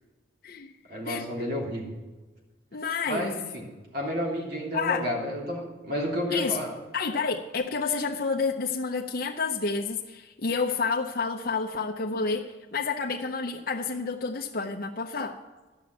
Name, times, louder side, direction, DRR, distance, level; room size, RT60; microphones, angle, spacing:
voice 1, 0.9-1.8 3.1-3.7 3.9-6.7, equal, 55° right, -2 dB, 3.2 m, -31 dB
voice 2, 2.7-3.3 4.7-5.1 6.3-6.6 6.9-15.4, left 4 dB, 50° left, 0 dB, 0.7 m, -29 dB
12.0 x 6.1 x 8.3 m, 1.2 s
head